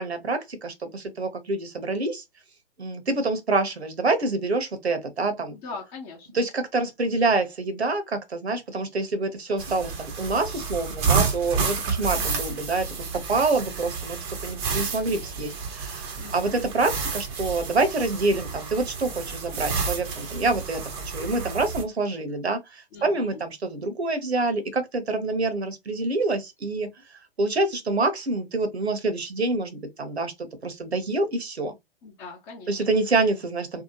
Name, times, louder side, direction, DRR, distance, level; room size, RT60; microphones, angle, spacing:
voice 1, 0.0-2.2 2.8-5.6 6.3-14.2 14.4-26.9 27.4-30.3 30.6-31.7 32.7-33.8, right 3 dB, 85° right, 0.9 m, -26 dB
voice 2, 5.6-6.4 12.0-12.5 16.2-16.6 22.9-23.4 32.0-32.8, left 4 dB, 25° left, 0.8 m, -41 dB
sound 1, 9.6-21.8, right 5 dB, 25° right, 0.6 m, -30 dB
2.8 x 2.1 x 2.8 m
figure-of-eight pair, 125°, 31 cm